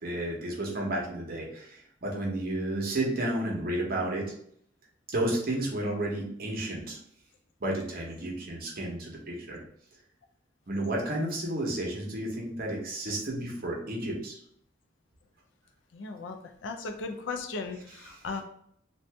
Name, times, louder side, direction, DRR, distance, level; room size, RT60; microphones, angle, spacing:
voice 1, 0.0-4.2 5.1-7.0 7.6-9.6 10.7-14.4 18.0-18.2, right 1 dB, 50° right, -1 dB, 0.9 m, -32 dB
voice 2, 15.9-18.4, left 4 dB, 75° left, 6 dB, 0.5 m, -37 dB
2.7 x 2.6 x 3.4 m, 0.66 s
head